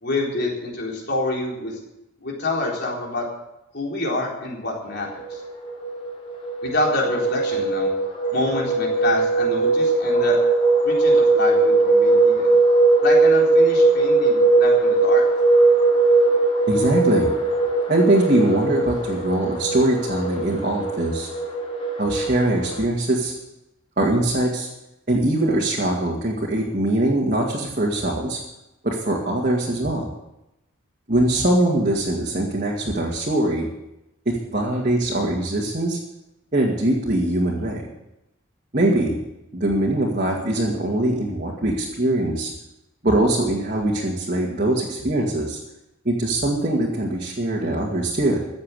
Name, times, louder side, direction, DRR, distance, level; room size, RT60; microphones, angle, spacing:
voice 1, 0.0-1.7 2.2-3.2 3.7-5.4 6.6-7.9 8.3-10.4 10.8-12.6 13.0-15.2, left 2 dB, 50° left, -2 dB, 4.1 m, -27 dB
sound 1, 5.1-22.8, right 3 dB, 25° left, 2.6 m, -19 dB
voice 2, 16.7-17.3 17.9-21.3 22.0-23.3 24.0-24.7 25.1-28.4 28.8-30.1 31.1-33.7 34.3-36.0 36.5-37.8 38.7-39.2 39.5-42.5 43.0-45.6 46.0-48.4, right 1 dB, 40° right, -3 dB, 2.2 m, -22 dB
15.5 x 7.7 x 8.4 m, 0.91 s
head